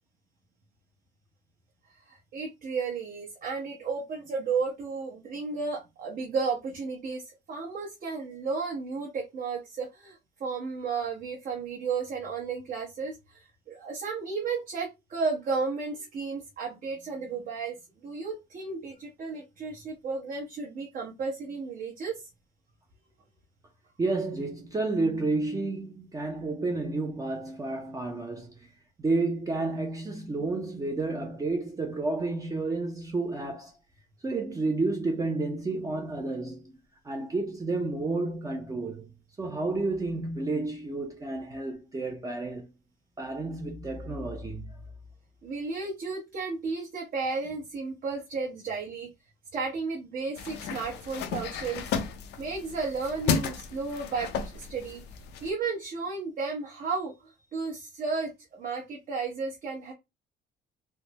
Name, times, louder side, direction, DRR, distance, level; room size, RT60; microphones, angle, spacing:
voice 1, 1.9-17.8 18.0-22.2 45.4-49.1 49.5-51.9 52.4-55.0 55.4-59.9, right 4 dB, 55° right, 0.9 m, -33 dB
voice 2, 24.0-28.5 29.0-33.8 34.2-36.7 37.0-39.1 39.4-42.7 43.2-44.8, right 3 dB, 20° right, 0.5 m, -31 dB
sound 1, 50.4-55.5, left 6 dB, 80° left, 0.5 m, -33 dB
3.3 x 2.0 x 2.9 m
cardioid pair, 110°, 17 cm